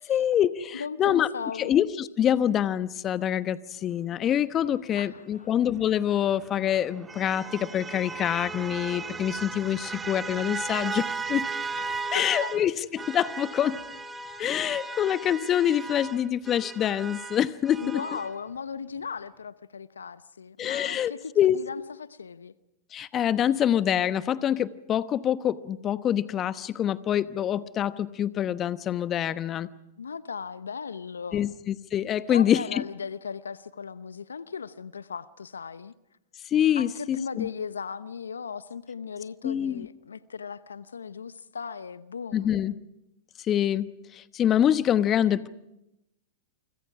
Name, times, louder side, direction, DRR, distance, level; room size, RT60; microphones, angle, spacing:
voice 1, 0.1-1.3 1.6-11.5 12.1-13.8 14.4-18.0 20.6-21.6 22.9-29.7 31.3-32.8 36.5-37.5 39.4-39.9 42.3-42.7 43.5-45.5, left 10 dB, 30° left, 1.0 m, -25 dB
voice 2, 0.7-1.7 5.0-5.5 12.1-12.5 17.8-22.5 30.0-31.5 32.3-35.9 36.8-42.7, left 6 dB, 85° left, 0.8 m, -37 dB
sound 1, 6.0-12.6 13.0-18.3, right 4 dB, 15° right, 1.8 m, -36 dB
29.0 x 25.5 x 4.9 m
hypercardioid pair, 100°, 0 cm